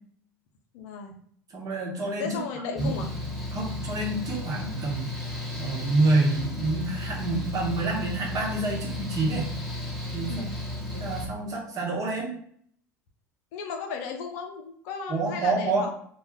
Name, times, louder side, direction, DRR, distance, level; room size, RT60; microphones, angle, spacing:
voice 1, 0.7-1.1 2.2-3.1 10.3-10.5 13.5-15.9, left 5 dB, 70° left, 3 dB, 0.6 m, -35 dB
voice 2, 1.5-2.4 2.8-3.0 3.5-5.1 5.6-9.5 10.1-10.5 10.9-12.3 15.1-15.9, right 2 dB, 40° right, -3 dB, 1.2 m, -27 dB
Mechanical fan, 2.8-11.3, left 1 dB, ahead, 1.0 m, -34 dB
2.4 x 2.4 x 3.5 m, 0.63 s
hypercardioid pair, 80°, 9 cm